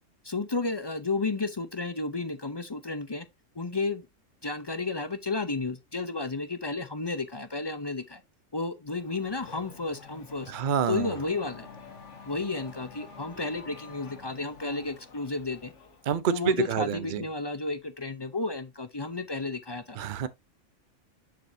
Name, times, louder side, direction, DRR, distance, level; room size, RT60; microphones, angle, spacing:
voice 1, 0.2-3.3 3.5-4.1 4.4-8.2 8.5-10.5 10.9-11.7 12.2-15.7 16.3-20.0, left 3 dB, 30° left, 0.5 m, -32 dB
Race car auto racing / Accelerating revving vroom, 8.9-16.2, left 4 dB, 70° left, 1.8 m, -48 dB
voice 2, 10.5-11.1 16.1-17.2 20.0-20.3, right 8 dB, 50° right, 0.7 m, -28 dB
6.9 x 6.5 x 2.7 m
omnidirectional pair, 1.3 m